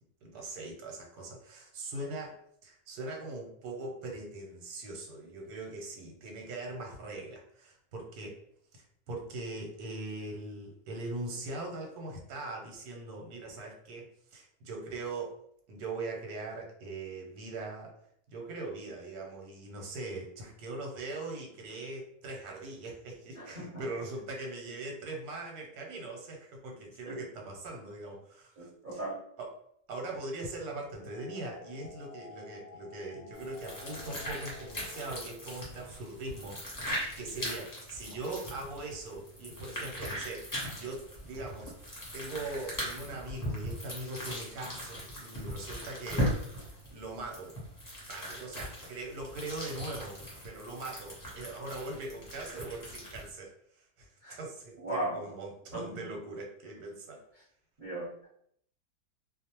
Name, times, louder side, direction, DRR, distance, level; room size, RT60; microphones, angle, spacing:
voice 1, 0.2-8.4 8.7-15.4 15.7-17.9 18.3-29.0 29.4-29.5 29.9-36.8 37.2-41.7 42.1-46.3 46.9-47.6 48.1-57.2, right 2 dB, 85° right, 0 dB, 1.2 m, -41 dB
voice 2, 23.4-23.7 27.1-27.2 28.6-29.2 54.2-54.4 54.8-55.3 55.7-55.9 57.8-58.3, right 1 dB, 35° right, -9 dB, 1.1 m, -37 dB
sound 1, 30.5-35.4, left 5 dB, 90° left, 1.1 m, -51 dB
sound 2, 33.3-53.3, equal, 25° left, 0.4 m, -39 dB
2.6 x 2.1 x 2.9 m, 0.67 s
omnidirectional pair, 1.6 m